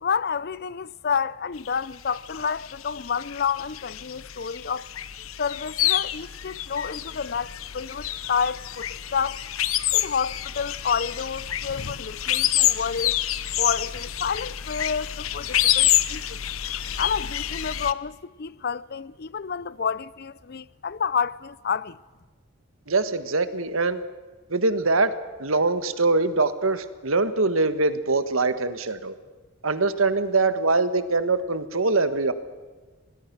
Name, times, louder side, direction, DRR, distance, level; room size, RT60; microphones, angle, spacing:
voice 1, 0.0-4.9 5.4-9.4 9.9-13.2 13.6-16.4 17.0-22.0, left 6 dB, 50° left, 0.5 m, -29 dB
sound 1, 1.6-17.9, left 12 dB, 85° left, 0.9 m, -28 dB
voice 2, 22.9-24.0 24.5-25.1 25.4-29.1 29.6-32.3, right 3 dB, 80° right, 1.6 m, -23 dB
26.0 x 19.5 x 6.1 m
head